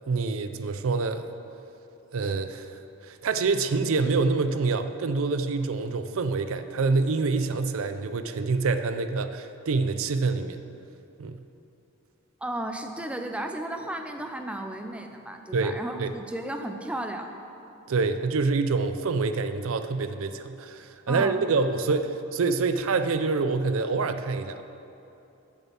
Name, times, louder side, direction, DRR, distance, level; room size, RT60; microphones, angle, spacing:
voice 1, 0.1-1.3 2.1-10.6 11.2-11.4 15.5-16.1 17.9-24.6, right 4 dB, 65° right, 10 dB, 0.5 m, -26 dB
voice 2, 12.4-17.3 21.1-21.4, right 1 dB, 5° right, 5 dB, 0.5 m, -34 dB
8.4 x 6.7 x 7.5 m, 2.9 s
head